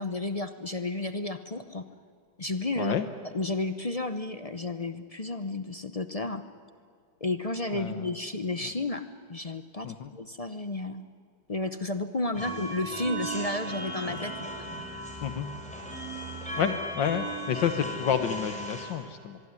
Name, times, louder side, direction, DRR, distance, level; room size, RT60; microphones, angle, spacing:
voice 1, 0.0-1.9 2.4-2.9 3.3-6.4 7.2-11.1 11.5-14.3 16.6-16.7, left 2 dB, 50° left, 9 dB, 0.4 m, -32 dB
voice 2, 7.7-8.1 8.6-8.7 9.8-10.1 15.2-15.5 16.6-19.4, left 8 dB, 75° left, 9 dB, 1.7 m, -30 dB
sound 1, 12.3-18.9, right 1 dB, 5° left, 5.5 m, -36 dB
24.5 x 22.5 x 9.7 m, 2.2 s
omnidirectional pair, 2.0 m